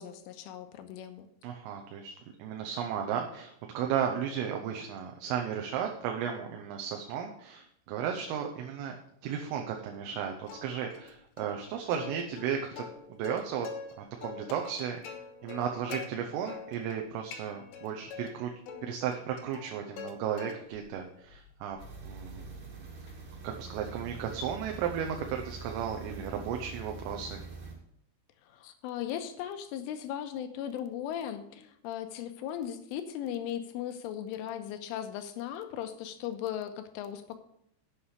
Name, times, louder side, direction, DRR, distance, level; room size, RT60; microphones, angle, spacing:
voice 1, 0.0-1.3 28.4-37.4, left 10 dB, 85° left, 8 dB, 3.4 m, -37 dB
voice 2, 1.4-2.1 2.4-9.0 9.2-13.7 14.0-15.0 15.4-18.5 18.8-21.8 22.0-22.5 23.4-27.4, right 8 dB, 85° right, 3 dB, 3.5 m, -34 dB
Plucked string instrument, 10.5-11.1 11.4-11.5 11.9-13.9 14.2-16.1 16.5-17.0 17.3-18.3 18.7-20.1 20.4-20.9 21.3-25.5, left 6 dB, 70° left, 3.2 m, -45 dB
sound 1, 21.8-27.7, right 3 dB, 50° right, 3.4 m, -44 dB
8.6 x 7.4 x 6.6 m, 0.71 s
omnidirectional pair, 5.7 m